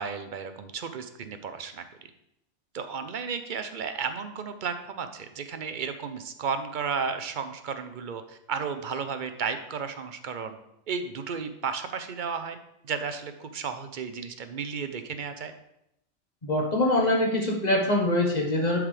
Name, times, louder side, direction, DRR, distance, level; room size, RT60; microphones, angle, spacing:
voice 1, 0.0-1.8 2.7-10.6 10.9-12.6 12.8-15.5, right 6 dB, 50° right, 8 dB, 0.7 m, -33 dB
voice 2, 16.4-18.8, left 1 dB, 35° left, -1 dB, 1.5 m, -24 dB
11.0 x 4.8 x 3.4 m, 0.81 s
omnidirectional pair, 1.3 m